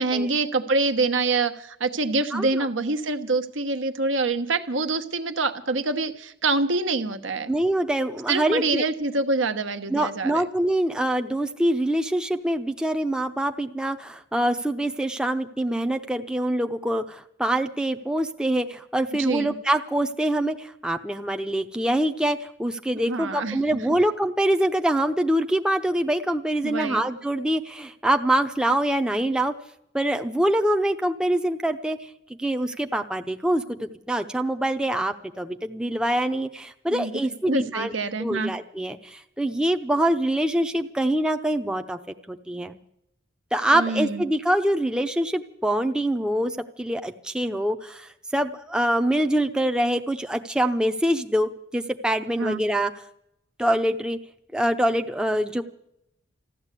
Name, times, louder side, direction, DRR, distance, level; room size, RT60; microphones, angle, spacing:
voice 1, 0.0-7.5 8.3-10.4 19.2-19.5 22.9-23.8 26.6-27.0 36.9-37.1 37.5-38.5 43.7-44.2 52.4-52.6, right 3 dB, 80° right, 9 dB, 1.1 m, -26 dB
voice 2, 2.3-2.7 7.5-8.8 9.9-29.5 29.9-32.0 32.4-37.9 38.2-42.0 42.3-42.8 43.5-52.9 53.6-54.2 54.5-55.6, right 1 dB, 5° right, 6 dB, 0.6 m, -25 dB
14.5 x 12.0 x 8.3 m, 0.77 s
head